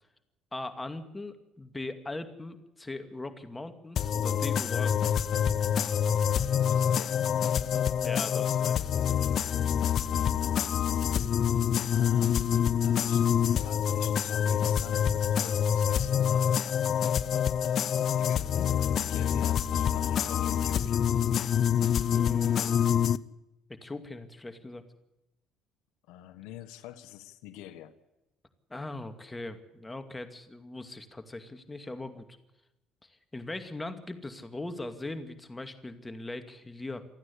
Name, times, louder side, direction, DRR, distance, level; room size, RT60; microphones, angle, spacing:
voice 1, 0.5-5.0 8.0-8.8 22.1-22.8 23.7-24.8 28.7-32.3 33.0-37.1, left 2 dB, 15° left, 8 dB, 2.4 m, -40 dB
sound 1, 4.0-23.2, left 8 dB, 50° left, 0.7 m, -26 dB
voice 2, 6.6-7.7 10.2-10.3 11.9-12.5 12.8-16.8 17.9-21.0 26.1-28.0, left 11 dB, 85° left, 11 dB, 1.4 m, -45 dB
27.5 x 9.7 x 9.9 m, 0.92 s
cardioid pair, 100°, 0 cm